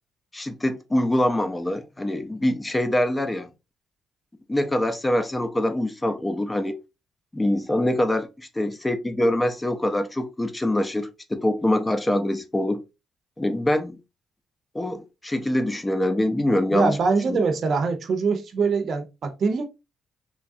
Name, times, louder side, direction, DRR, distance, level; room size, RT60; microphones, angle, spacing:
voice 1, 0.3-3.5 4.5-6.8 7.3-12.8 13.4-14.0 14.7-17.0 17.3-17.4, left 1 dB, 15° left, 0.5 m, -24 dB
voice 2, 16.7-19.6, right 4 dB, 55° right, 0.7 m, -23 dB
3.1 x 2.4 x 2.6 m
cardioid pair, 90°, 0 cm